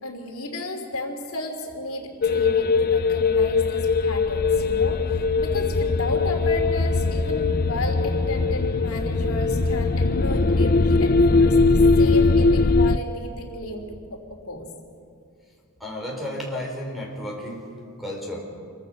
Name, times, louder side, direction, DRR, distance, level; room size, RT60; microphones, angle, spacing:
voice 1, 0.0-13.8 14.1-14.2 14.5-14.7, left 1 dB, 70° left, 3 dB, 3.2 m, -33 dB
sound 1, 2.2-13.0, left 3 dB, 40° left, 0.6 m, -20 dB
voice 2, 15.8-17.7 18.0-18.4, left 1 dB, ahead, -2 dB, 5.0 m, -32 dB
28.0 x 24.0 x 6.6 m, 2.4 s
head